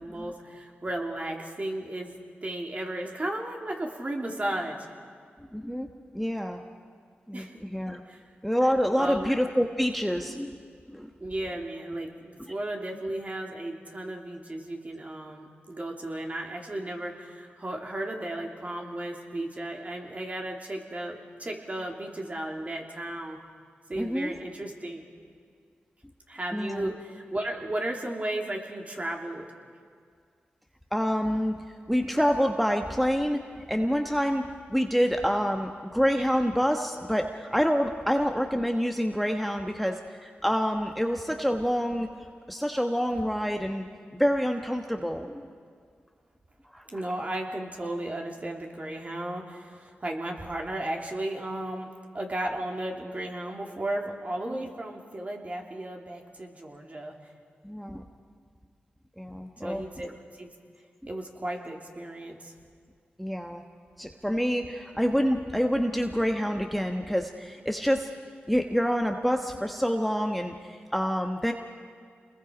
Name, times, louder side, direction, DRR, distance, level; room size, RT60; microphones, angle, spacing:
voice 1, 0.0-2.1 2.4-4.9 7.3-7.6 8.1-8.2 9.0-9.3 11.2-23.4 23.9-25.0 26.3-29.4 46.9-51.9 52.1-57.1 59.6-60.5 61.1-62.5, right 1 dB, 35° right, 1 dB, 2.9 m, -34 dB
voice 2, 5.5-5.9 6.1-6.6 7.3-8.0 8.4-10.5 10.9-11.1 24.0-24.3 26.5-26.9 30.9-31.5 31.9-42.1 42.5-43.8 44.2-45.4 46.7-46.8 54.5-54.6 57.6-58.0 59.2-59.8 63.2-63.6 64.0-68.1 68.5-71.5, equal, ahead, 4 dB, 1.2 m, -27 dB
28.0 x 21.0 x 5.1 m, 2.1 s
cardioid pair, 60°, 4 cm